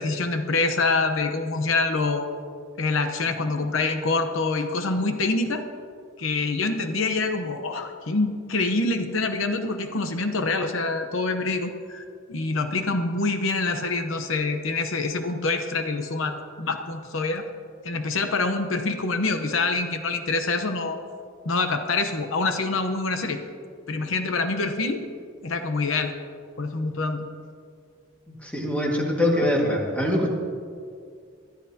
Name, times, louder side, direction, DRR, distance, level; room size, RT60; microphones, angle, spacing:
voice 1, 0.0-2.3 2.8-5.6 6.2-12.0 12.3-17.4 17.8-21.0 21.4-23.4 23.9-25.0 25.4-26.1 26.6-27.3, left 3 dB, 80° left, 7 dB, 0.9 m, -26 dB
voice 2, 28.4-30.3, left 1 dB, 5° left, -1 dB, 1.8 m, -23 dB
22.0 x 12.5 x 2.8 m, 2.2 s
head